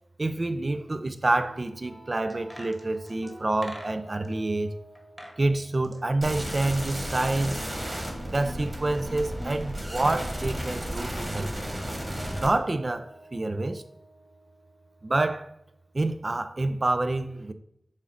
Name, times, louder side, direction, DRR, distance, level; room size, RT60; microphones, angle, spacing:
voice 1, 0.2-4.7 5.4-7.7 8.3-11.5 12.4-13.8 15.0-15.5 15.9-17.5, right 2 dB, 40° right, 0.5 m, -27 dB
sound 1, 1.3-16.3, right 2 dB, 65° right, 1.4 m, -52 dB
sound 2, 2.3-4.3 5.0-5.4 5.7-7.1 7.3-7.4, equal, ahead, 1.2 m, -45 dB
sound 3, 6.2-12.5, equal, 20° right, 1.9 m, -33 dB
7.3 x 2.5 x 5.7 m
wide cardioid pair, 80°, 0 cm